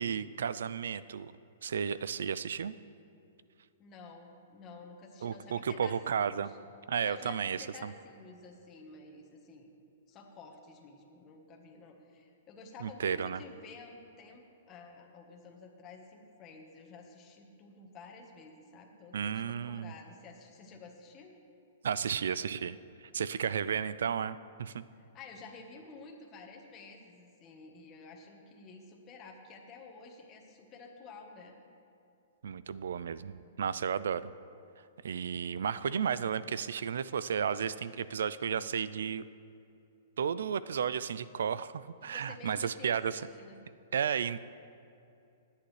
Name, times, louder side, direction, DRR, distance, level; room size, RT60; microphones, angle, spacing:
voice 1, 0.0-1.3 1.6-2.7 5.2-6.5 6.9-7.9 12.8-13.4 19.1-19.9 21.8-24.8 32.4-34.3 35.0-39.3 40.2-43.2 43.9-44.4, right 7 dB, 80° right, 16 dB, 0.4 m, -33 dB
voice 2, 3.8-6.6 7.0-9.7 10.1-21.3 24.9-31.6 37.8-38.0 42.0-43.6, left 3 dB, 25° left, 1 dB, 1.3 m, -51 dB
19.5 x 8.5 x 3.3 m, 2.7 s
hypercardioid pair, 145°, 0 cm